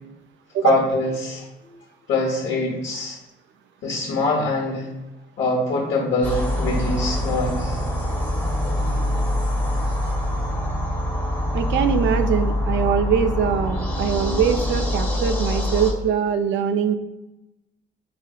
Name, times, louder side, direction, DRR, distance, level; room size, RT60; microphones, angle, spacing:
voice 1, 0.6-1.4 2.1-3.2 3.8-4.9 5.4-7.8, left 2 dB, 70° left, -4 dB, 1.0 m, -23 dB
sound 1, 6.2-15.9, left 1 dB, 10° left, 0.8 m, -24 dB
voice 2, 11.5-16.9, right 7 dB, 70° right, 9 dB, 0.4 m, -22 dB
4.9 x 2.8 x 2.3 m, 0.98 s
cardioid pair, 90°, 20 cm